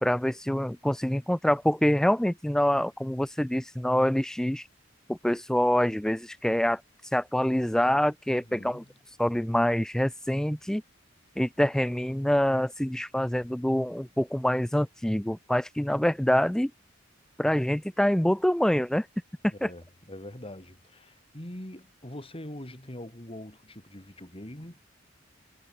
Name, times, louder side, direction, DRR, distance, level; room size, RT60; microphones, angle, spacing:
voice 1, 0.0-4.6 5.1-6.8 7.1-8.8 9.2-10.8 11.4-16.7 17.4-19.1 19.6-19.7, equal, 5° left, 0.3 m, -25 dB
voice 2, 8.3-8.9 19.5-24.8, left 1 dB, 30° left, 3.9 m, -43 dB
head